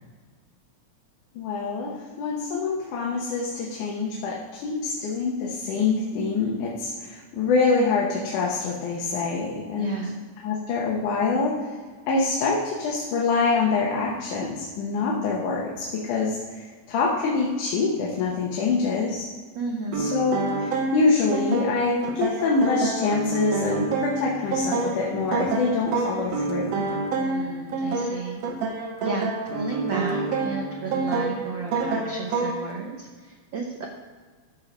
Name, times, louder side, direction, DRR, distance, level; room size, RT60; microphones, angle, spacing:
voice 1, 1.4-10.1 10.4-11.7 12.1-19.3 20.0-26.8, left 4 dB, 85° left, -3 dB, 2.7 m, -25 dB
voice 2, 9.8-10.1 19.5-20.1 27.2-28.4 29.0-33.9, right 4 dB, 85° right, 1 dB, 1.0 m, -33 dB
sound 1, 19.9-32.7, right 3 dB, 65° right, 1.9 m, -28 dB
13.5 x 5.9 x 5.1 m, 1.5 s
omnidirectional pair, 3.5 m